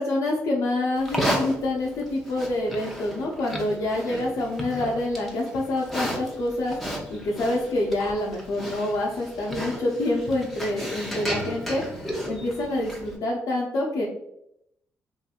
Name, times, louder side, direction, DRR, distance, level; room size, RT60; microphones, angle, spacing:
voice 1, 0.0-6.7 7.1-11.8 12.2-14.1, left 1 dB, 70° left, -4 dB, 0.5 m, -27 dB
Livestock farm animals working animals, 1.0-13.2, equal, ahead, 0.7 m, -33 dB
2.8 x 2.6 x 2.3 m, 0.78 s
cardioid pair, 80°, 6 cm